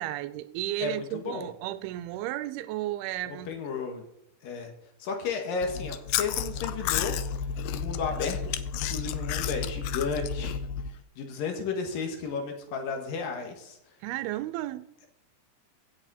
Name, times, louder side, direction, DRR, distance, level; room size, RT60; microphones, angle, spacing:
voice 1, 0.0-3.5 14.0-14.9, right 15 dB, 85° right, 2.5 m, -33 dB
voice 2, 0.8-1.5 3.3-4.0 4.4-4.7 5.0-7.2 7.7-10.6 11.2-13.8, left 5 dB, 65° left, 3.2 m, -33 dB
Chewing mastication, 5.6-10.9, left 8 dB, 85° left, 2.0 m, -31 dB
16.0 x 7.9 x 4.2 m
omnidirectional pair, 4.5 m